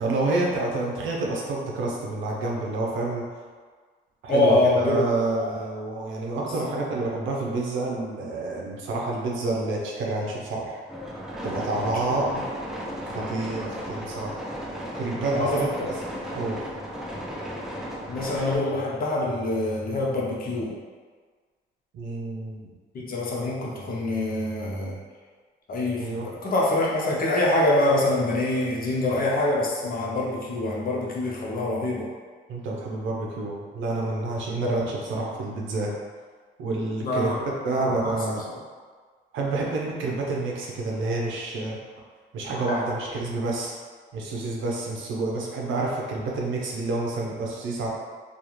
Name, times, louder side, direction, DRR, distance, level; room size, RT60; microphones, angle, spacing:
voice 1, 0.0-3.3 4.2-10.8 11.4-12.3 13.0-14.4 15.0-16.0 16.3-16.6 21.9-22.7 26.0-26.3 32.5-35.9 36.6-37.4 37.6-38.4 39.3-41.8 42.3-43.7 44.1-47.9, right 2 dB, 80° right, -2 dB, 0.6 m, -28 dB
voice 2, 4.3-5.0 5.4-5.5 6.4-6.8 11.8-11.9 12.2-12.4 13.1-13.2 15.3-15.7 18.1-20.8 22.9-25.0 25.7-32.1 34.6-34.8 37.0-37.4 37.7-38.1 38.5-38.6, left 2 dB, 45° left, -3 dB, 0.6 m, -25 dB
sound 1, 10.9-18.6, equal, ahead, 0.4 m, -35 dB
2.3 x 2.3 x 3.0 m, 1.5 s
cardioid pair, 90°, 20 cm